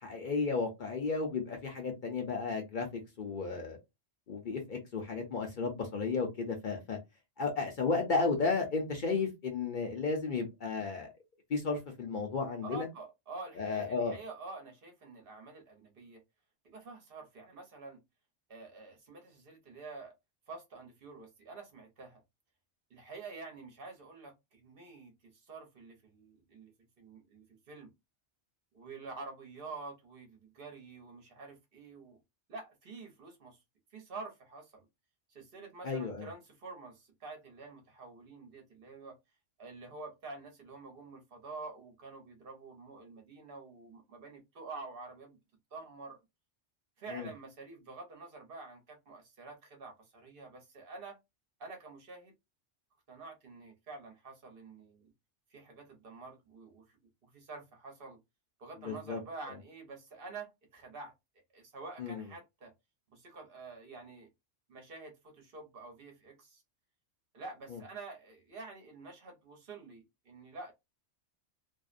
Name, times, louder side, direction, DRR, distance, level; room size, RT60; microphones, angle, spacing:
voice 1, 0.0-3.8 4.3-7.0 7.4-11.1 11.5-12.9 13.6-14.2 35.8-36.3 47.1-47.3 58.9-59.2 62.0-62.2, left 4 dB, 50° left, 0.7 m, -33 dB
voice 2, 12.6-16.2 16.6-18.0 18.5-20.1 20.5-22.2 22.9-27.9 28.7-32.2 32.5-33.6 33.9-34.9 35.3-39.2 39.6-45.4 45.7-46.2 47.0-51.2 51.6-52.3 53.1-55.1 55.5-58.2 58.6-61.1 61.5-62.7 63.1-64.3 64.7-66.6 67.3-70.7, right 3 dB, 55° right, 0.9 m, -48 dB
2.5 x 2.0 x 2.4 m
omnidirectional pair, 1.2 m